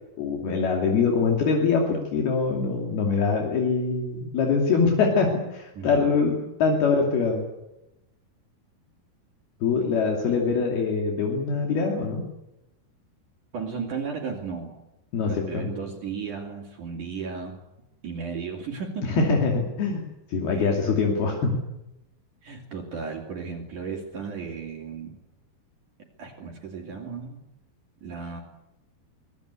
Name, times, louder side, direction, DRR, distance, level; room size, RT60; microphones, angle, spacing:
voice 1, 0.2-7.4 9.6-12.2 15.1-15.7 19.1-21.6, left 4 dB, 65° left, 1 dB, 4.5 m, -24 dB
voice 2, 5.8-6.1 13.5-14.8 15.2-17.6 18.0-19.1 20.5-20.8 22.4-25.2 26.2-27.4 28.0-28.4, right 5 dB, 50° right, 1 dB, 4.0 m, -34 dB
24.5 x 19.5 x 8.3 m, 0.92 s
omnidirectional pair, 4.8 m